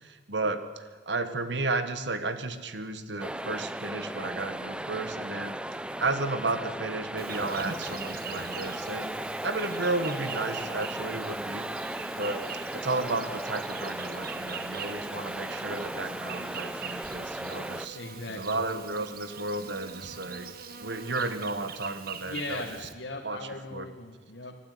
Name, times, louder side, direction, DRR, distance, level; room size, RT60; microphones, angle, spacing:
voice 1, 0.0-9.2 9.4-11.7 12.1-12.5 12.7-18.0 18.3-20.5 20.8-22.6 23.2-23.4 23.7-23.9, right 2 dB, 75° right, 10 dB, 1.7 m, -33 dB
sound 1, 3.2-17.9, right 1 dB, 5° right, 0.7 m, -36 dB
Insect, 7.2-22.9, right 6 dB, 55° right, 1.5 m, -43 dB
voice 2, 17.9-18.6 22.2-24.6, left 2 dB, 75° left, 1 dB, 1.8 m, -38 dB
25.0 x 12.0 x 9.5 m, 1.5 s
head